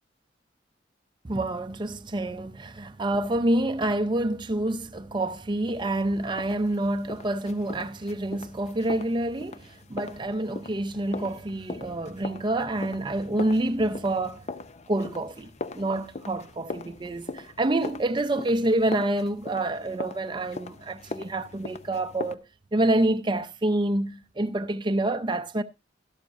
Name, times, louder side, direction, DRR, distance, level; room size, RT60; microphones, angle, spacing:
voice 1, 1.2-14.5 14.9-22.4 22.7-25.6, right 1 dB, 25° right, 0.6 m, -27 dB
sound 1, 5.7-22.3, left 3 dB, 40° left, 0.6 m, -41 dB
12.5 x 12.0 x 2.5 m
head